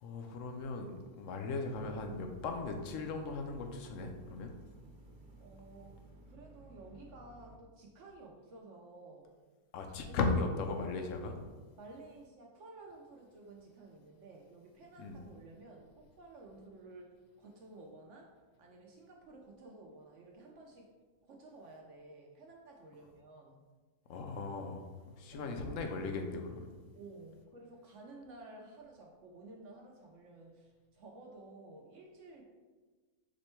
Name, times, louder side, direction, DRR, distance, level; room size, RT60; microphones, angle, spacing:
voice 1, 0.0-4.6 9.7-11.4 15.0-15.2 24.1-24.9 25.2-26.7, left 3 dB, 70° left, 4 dB, 0.8 m, -37 dB
sound 1, 1.7-7.6, right 1 dB, 85° right, 1.1 m, -56 dB
voice 2, 5.4-6.0 6.3-9.3 10.1-10.2 11.8-20.9 21.2-23.6 25.3-25.9 26.9-32.4, right 2 dB, 65° right, 0 dB, 0.8 m, -53 dB
5.1 x 2.1 x 4.3 m, 1.3 s
omnidirectional pair, 1.6 m